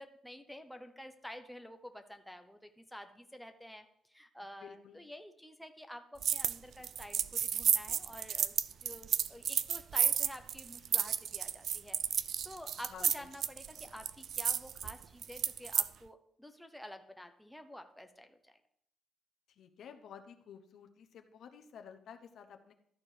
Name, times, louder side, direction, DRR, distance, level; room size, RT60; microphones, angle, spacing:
voice 1, 0.0-8.5 8.8-18.5, left 1 dB, ahead, 6 dB, 0.9 m, -50 dB
voice 2, 4.6-5.0 12.9-13.3 19.6-22.7, left 7 dB, 70° left, 7 dB, 1.0 m, -52 dB
sound 1, 6.2-6.6 6.8-15.9, right 8 dB, 60° right, 0.4 m, -32 dB
13.0 x 4.5 x 5.0 m, 0.70 s
cardioid pair, 90°, 0 cm